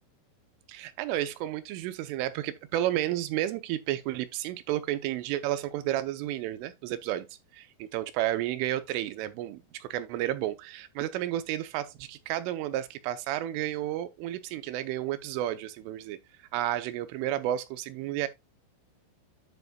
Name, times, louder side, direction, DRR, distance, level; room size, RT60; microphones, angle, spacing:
voice 1, 0.7-7.3 7.5-7.7 7.9-16.2 16.5-18.3, right 13 dB, 80° right, 3.2 m, -31 dB
11.0 x 6.7 x 2.3 m
omnidirectional pair, 5.8 m